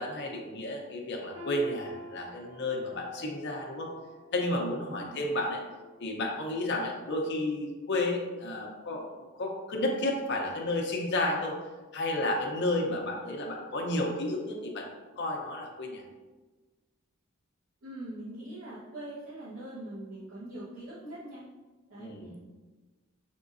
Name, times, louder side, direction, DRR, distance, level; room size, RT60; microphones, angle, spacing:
voice 1, 0.0-3.9 4.3-5.6 6.0-11.6 11.9-14.9 15.2-16.0 22.0-22.3, left 1 dB, 60° left, 0 dB, 0.7 m, -32 dB
sound 1, 1.3-7.3 7.7-7.9 8.7-8.8, equal, 35° right, 1.1 m, -49 dB
voice 2, 4.9-5.2 17.8-21.5 21.9-22.4, right 1 dB, 90° right, -11 dB, 1.2 m, -42 dB
5.1 x 3.6 x 2.5 m, 1.3 s
head